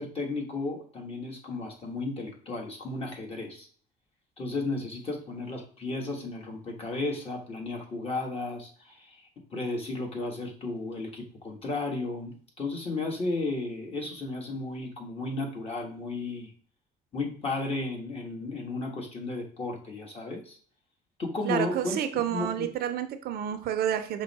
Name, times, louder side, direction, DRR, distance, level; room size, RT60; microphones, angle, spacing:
voice 1, 0.0-3.7 4.4-16.5 17.1-20.6 21.2-22.0 22.3-22.7, left 2 dB, 35° left, 0 dB, 1.5 m, -34 dB
voice 2, 21.4-24.2, right 10 dB, 65° right, 9 dB, 0.6 m, -29 dB
5.4 x 2.1 x 4.1 m, 0.44 s
cardioid pair, 110°, 17 cm